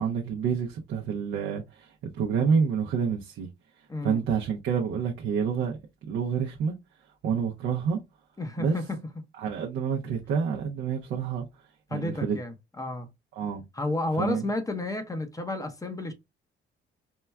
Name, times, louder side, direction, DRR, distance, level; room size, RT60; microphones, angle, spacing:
voice 1, 0.0-3.5 4.0-5.8 6.1-6.7 7.2-8.0 8.6-8.8 9.4-11.5 11.9-12.4 13.4-13.6 14.2-14.4, right 6 dB, 75° right, 0.6 m, -28 dB
voice 2, 3.9-4.2 8.4-9.0 11.9-13.1 13.7-16.1, left 2 dB, 15° left, 0.7 m, -31 dB
4.5 x 2.2 x 2.2 m
cardioid pair, 90°, 20 cm